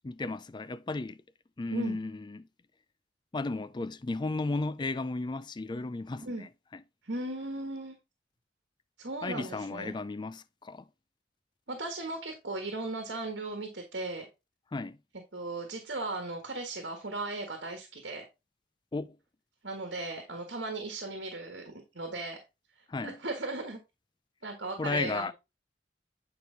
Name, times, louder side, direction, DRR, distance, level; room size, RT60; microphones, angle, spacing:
voice 1, 0.0-1.2 1.6-2.5 3.3-6.8 9.2-10.9 14.7-15.0 18.9-19.2 22.9-23.2 24.8-25.3, left 3 dB, 25° left, 0.4 m, -34 dB
voice 2, 7.0-7.9 9.0-9.9 11.7-14.3 15.3-18.2 19.6-22.4 23.0-23.8 24.4-25.3, right 2 dB, 70° right, 1.6 m, -37 dB
8.8 x 4.8 x 3.9 m
head